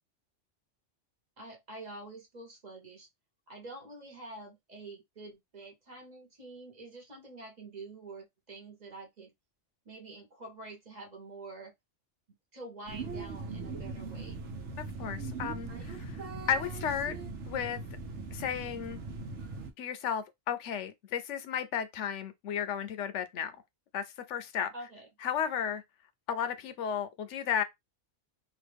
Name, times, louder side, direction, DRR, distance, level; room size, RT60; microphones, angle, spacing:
voice 1, 1.4-3.1 3.5-9.3 9.8-11.7 12.5-14.4 24.7-25.1, right 2 dB, 40° right, 1.1 m, -47 dB
sound 1, 12.9-19.7, right 3 dB, 75° right, 1.1 m, -40 dB
voice 2, 15.0-16.2 16.5-17.2 17.5-17.8 18.3-19.0 19.8-23.5 23.9-24.7 25.2-25.8 26.3-27.6, left 8 dB, 80° left, 0.9 m, -33 dB
3.0 x 2.4 x 3.3 m
omnidirectional pair, 1.2 m